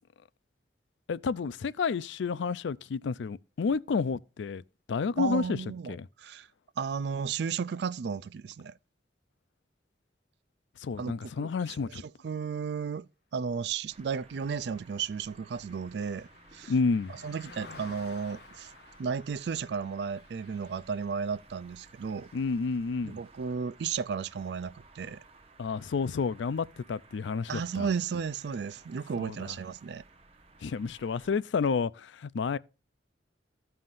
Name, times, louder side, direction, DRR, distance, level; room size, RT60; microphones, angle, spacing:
voice 1, 1.1-4.6 4.9-5.6 5.9-6.1 10.8-12.0 16.7-17.1 22.3-23.2 25.6-27.9 29.2-29.5 30.6-32.6, left 5 dB, 80° left, 0.4 m, -30 dB
voice 2, 5.2-6.5 6.8-8.7 11.0-11.5 11.8-16.7 17.1-18.7 19.0-22.3 23.0-25.2 27.5-30.0, right 6 dB, 65° right, 0.4 m, -34 dB
sound 1, 13.9-31.4, right 3 dB, 35° right, 0.8 m, -57 dB
Car passing by, 14.1-23.6 24.0-24.2, left 3 dB, 60° left, 1.2 m, -54 dB
15.0 x 5.6 x 2.5 m
head